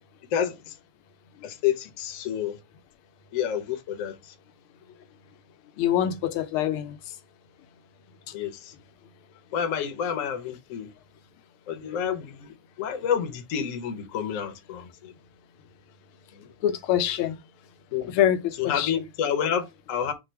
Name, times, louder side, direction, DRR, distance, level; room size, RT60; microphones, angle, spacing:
voice 1, 0.3-0.7 1.4-2.6 3.3-4.2 8.3-8.7 9.5-10.9 11.7-15.1 16.4-16.5 17.9-18.1 18.6-20.1, left 8 dB, 55° left, 0.9 m, -29 dB
voice 2, 5.8-7.0 16.6-17.4 18.1-18.9, left 10 dB, 85° left, 1.5 m, -24 dB
5.2 x 2.3 x 4.4 m
omnidirectional pair, 2.3 m